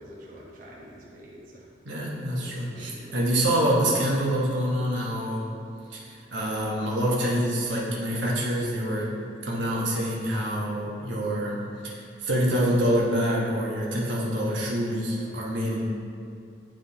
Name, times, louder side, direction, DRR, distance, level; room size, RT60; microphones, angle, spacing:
voice 1, 0.0-1.7 2.7-3.4 15.2-15.5, equal, 45° right, -6 dB, 1.1 m, -47 dB
voice 2, 1.9-5.5 5.9-9.1 9.4-15.8, equal, 90° right, -5 dB, 1.2 m, -26 dB
10.5 x 3.7 x 2.9 m, 2.5 s
head